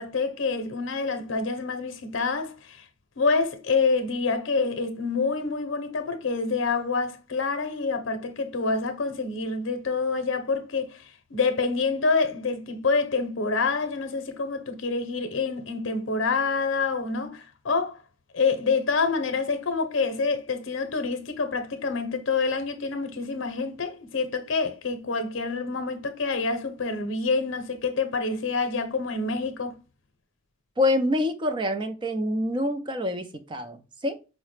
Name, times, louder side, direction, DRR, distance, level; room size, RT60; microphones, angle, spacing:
voice 1, 0.0-2.8 3.2-11.0 11.3-18.0 18.3-29.8, left 4 dB, 80° left, 0.7 m, -27 dB
voice 2, 30.8-34.2, left 1 dB, 25° right, 0.4 m, -26 dB
4.7 x 2.1 x 3.1 m
head